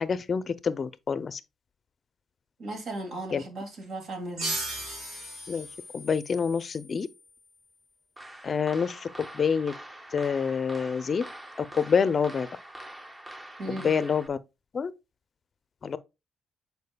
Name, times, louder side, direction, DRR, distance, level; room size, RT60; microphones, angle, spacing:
voice 1, 0.0-1.4 3.3-3.4 5.5-5.7 5.9-7.1 8.4-9.1 9.3-9.7 10.1-11.3 11.7-12.5 13.7-14.4 14.7-14.9 15.8-16.0, left 6 dB, 45° left, 0.5 m, -27 dB
voice 2, 2.6-4.5 13.6-13.9, right 2 dB, 65° right, 2.2 m, -36 dB
sound 1, 4.4-7.6, right 1 dB, 80° right, 2.9 m, -37 dB
sound 2, 8.2-14.3, right 1 dB, 20° right, 0.9 m, -44 dB
9.5 x 4.6 x 2.2 m
cardioid pair, 90°, 0 cm